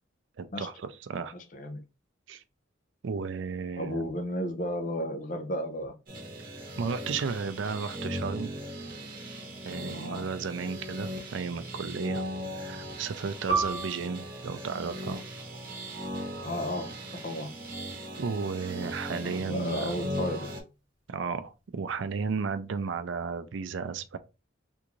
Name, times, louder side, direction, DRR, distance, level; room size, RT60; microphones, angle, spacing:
voice 1, 0.4-1.4 2.3-2.4 3.0-4.1 6.8-8.5 9.6-12.2 12.6-15.2 18.2-20.1 21.1-24.2, right 5 dB, 70° right, 0.4 m, -34 dB
voice 2, 1.3-1.8 3.8-5.9 9.9-10.3 16.4-16.9 17.2-17.5 19.2-20.5, equal, 40° left, 0.5 m, -33 dB
sound 1, 6.1-20.6, equal, 45° right, 1.0 m, -38 dB
Piano, 13.5-18.5 18.9-19.0 19.8-20.2, right 4 dB, 20° right, 1.3 m, -36 dB
3.5 x 2.5 x 3.0 m
head